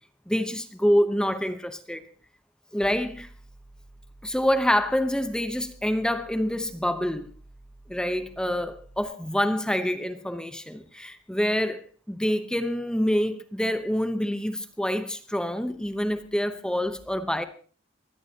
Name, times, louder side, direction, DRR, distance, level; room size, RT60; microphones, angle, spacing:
voice 1, 0.3-2.0 2.7-3.3 4.2-7.3 7.9-17.4, equal, 5° left, 0.9 m, -26 dB
sound 1, 2.8-9.0, right 1 dB, 25° left, 4.3 m, -51 dB
22.5 x 16.0 x 2.9 m
head